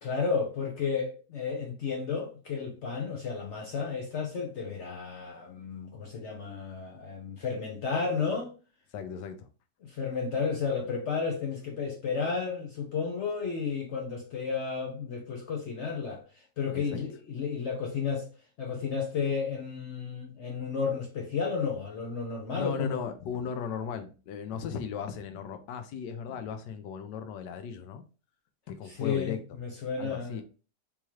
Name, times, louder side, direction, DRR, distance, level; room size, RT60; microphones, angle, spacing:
voice 1, 0.0-8.5 9.8-18.2 18.6-23.0 28.8-30.4, left 5 dB, 60° left, 0.7 m, -32 dB
voice 2, 8.9-9.5 16.7-17.0 22.5-28.0 28.7-29.4 30.0-30.4, left 7 dB, 80° left, 1.2 m, -37 dB
3.6 x 3.0 x 2.9 m
omnidirectional pair, 1.9 m